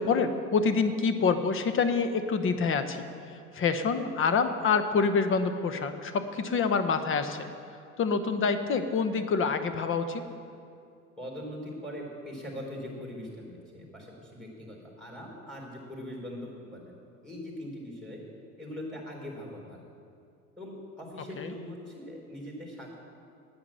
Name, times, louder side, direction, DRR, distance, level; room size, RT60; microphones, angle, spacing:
voice 1, 0.0-3.0 3.5-7.5 8.0-10.2 21.4-21.5, left 5 dB, 25° left, 9 dB, 1.0 m, -26 dB
voice 2, 11.2-16.9 17.2-18.2 18.6-19.8 20.6-22.9, left 1 dB, ahead, -2 dB, 3.9 m, -41 dB
10.0 x 8.9 x 8.9 m, 2.5 s
hypercardioid pair, 85°, 46 cm